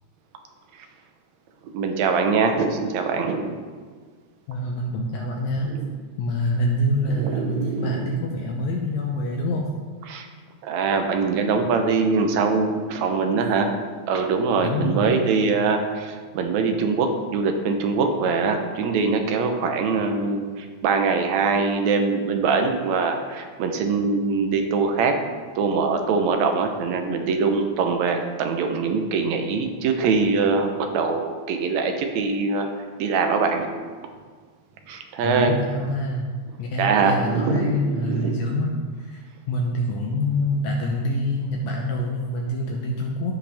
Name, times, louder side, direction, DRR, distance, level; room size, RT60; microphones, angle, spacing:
voice 1, 1.7-3.6 7.2-8.1 10.1-10.3 10.6-13.7 14.1-25.1 25.6-32.7 33.0-33.7 34.9-35.5 36.8-37.8 38.1-38.4, right 4 dB, 70° right, 5 dB, 2.0 m, -23 dB
voice 2, 4.5-5.8 6.2-9.7 14.5-15.2 35.2-43.3, left 1 dB, 70° left, 0 dB, 1.9 m, -26 dB
15.5 x 5.3 x 3.5 m, 1.5 s
omnidirectional pair, 3.6 m